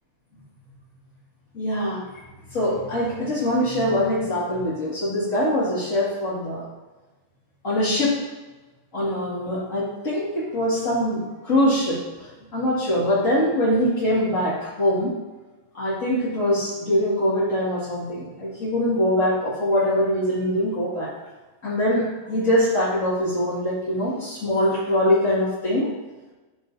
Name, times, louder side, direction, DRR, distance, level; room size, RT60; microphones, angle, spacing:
voice 1, 1.5-2.2 2.5-6.7 7.6-8.2 8.9-15.1 15.7-21.1 21.6-25.9, left 1 dB, 75° left, -9 dB, 0.7 m, -23 dB
13.0 x 5.0 x 2.7 m, 1.2 s
omnidirectional pair, 5.1 m